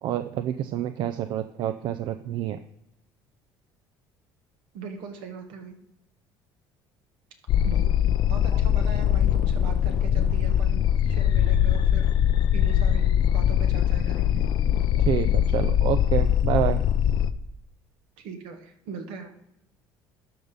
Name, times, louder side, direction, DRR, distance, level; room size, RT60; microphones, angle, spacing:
voice 1, 0.0-2.6 8.5-8.6 15.0-16.8, right 11 dB, 65° right, 10 dB, 0.5 m, -28 dB
voice 2, 4.7-5.7 7.6-7.8 8.3-12.1 12.5-14.4 18.2-19.3, right 5 dB, 80° right, 4 dB, 1.7 m, -40 dB
sound 1, 7.5-17.3, left 10 dB, 60° left, 0.5 m, -22 dB
12.5 x 4.1 x 5.2 m, 0.81 s
cardioid pair, 100°, 9 cm